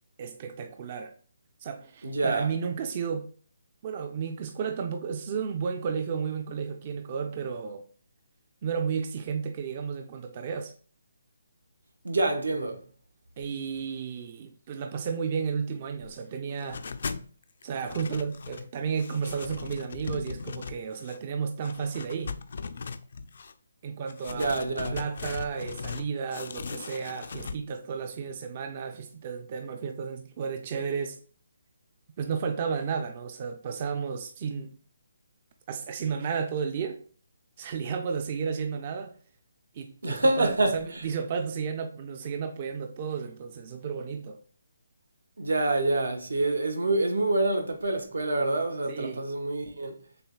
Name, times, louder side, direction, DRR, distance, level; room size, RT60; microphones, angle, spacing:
voice 1, 0.2-1.1 1.6-3.3 3.8-7.9 8.6-10.7 13.4-16.9 17.6-22.4 23.8-24.5 24.9-31.2 32.2-34.8 35.7-37.0 37.6-39.1 39.7-44.4 48.9-49.2, right 6 dB, 30° right, 0.4 m, -33 dB
voice 2, 2.0-2.5 12.0-12.8 24.3-25.0 40.0-41.1 45.4-50.0, right 2 dB, 90° right, 1.1 m, -27 dB
sound 1, 16.6-17.3 17.6-18.7 19.0-21.2 21.6-23.5 24.1-26.0 26.3-27.6, left 5 dB, 55° left, 0.4 m, -38 dB
6.5 x 2.3 x 2.2 m
hypercardioid pair, 165°, 0 cm